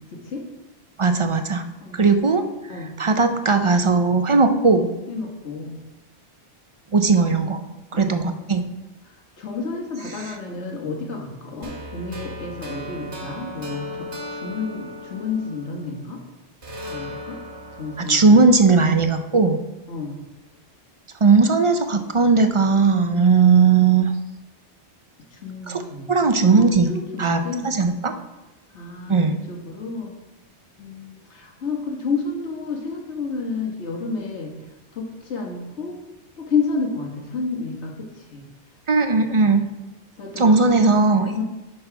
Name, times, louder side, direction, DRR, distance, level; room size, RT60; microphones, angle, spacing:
voice 1, 0.1-0.5 1.8-2.2 2.7-2.9 5.1-5.8 7.9-8.2 9.0-16.2 16.9-17.4 17.8-18.4 19.9-20.2 25.3-27.7 28.7-29.2 29.5-30.2 30.8-34.5 34.9-36.0 36.4-38.5 40.2-40.6 41.3-41.4, left 4 dB, 80° left, 1 dB, 1.6 m, -30 dB
voice 2, 1.0-1.6 1.9-2.4 3.0-4.9 6.9-7.7 7.9-8.6 18.1-19.6 21.2-24.1 25.7-25.8 26.1-26.9 27.2-28.1 29.1-29.4 38.9-39.7 40.4-41.4, right 4 dB, 45° right, 7 dB, 0.4 m, -17 dB
sound 1, 11.6-16.2 16.6-19.7, equal, 70° right, 1.5 m, -37 dB
9.7 x 4.0 x 5.7 m, 1.0 s
omnidirectional pair, 1.2 m